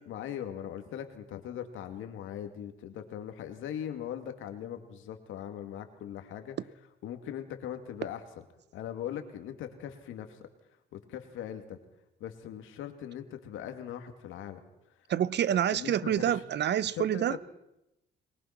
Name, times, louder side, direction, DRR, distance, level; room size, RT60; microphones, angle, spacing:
voice 1, 0.1-6.6 7.0-8.2 8.7-10.4 10.9-11.8 12.2-14.6 15.7-16.4 16.8-17.4, left 10 dB, 90° left, 2.5 m, -40 dB
voice 2, 15.1-17.4, right 10 dB, 60° right, 0.8 m, -27 dB
23.0 x 20.0 x 6.0 m
cardioid pair, 90°, 20 cm